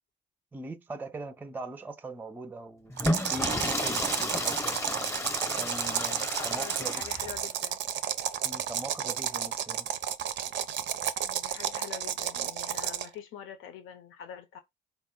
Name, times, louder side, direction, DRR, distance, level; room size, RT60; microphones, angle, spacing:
voice 1, 0.5-5.1 5.6-7.0 8.4-9.9, right 2 dB, 10° right, 0.4 m, -41 dB
Water / Toilet flush, 2.9-7.4, left 1 dB, 15° left, 0.7 m, -32 dB
sound 1, 3.0-13.1, right 10 dB, 65° right, 0.5 m, -32 dB
voice 2, 6.4-7.8 11.2-14.6, left 8 dB, 85° left, 0.7 m, -45 dB
4.1 x 2.1 x 3.6 m
cardioid pair, 90°, 20 cm